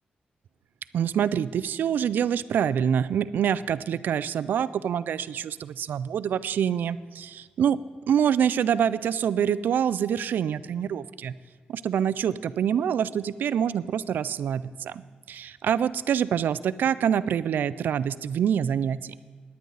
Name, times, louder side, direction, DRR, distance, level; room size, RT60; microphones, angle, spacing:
voice 1, 0.9-7.0 7.6-7.8 8.1-11.3 11.7-15.0 15.3-19.1, right 8 dB, 75° right, 16 dB, 0.4 m, -25 dB
17.5 x 10.5 x 4.0 m, 1.5 s
wide cardioid pair, 180°, 3 cm